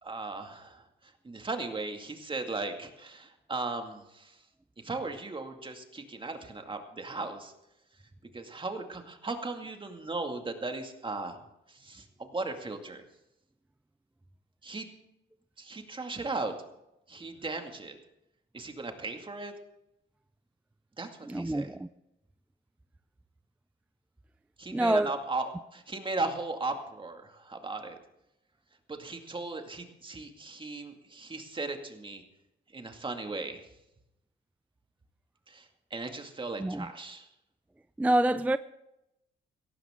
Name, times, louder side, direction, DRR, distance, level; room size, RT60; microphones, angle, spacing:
voice 1, 0.0-4.4 4.8-7.5 8.3-11.4 11.7-13.0 14.6-14.9 15.6-16.5 17.1-18.0 18.5-19.5 21.0-21.7 24.6-28.0 28.9-32.2 32.7-33.6 35.5-37.3, right 3 dB, 25° right, 2.2 m, -37 dB
voice 2, 21.3-21.9 24.7-25.1 36.6-36.9 38.0-38.6, right 1 dB, 5° right, 0.4 m, -26 dB
17.5 x 14.5 x 3.7 m
cardioid pair, 90°, 20 cm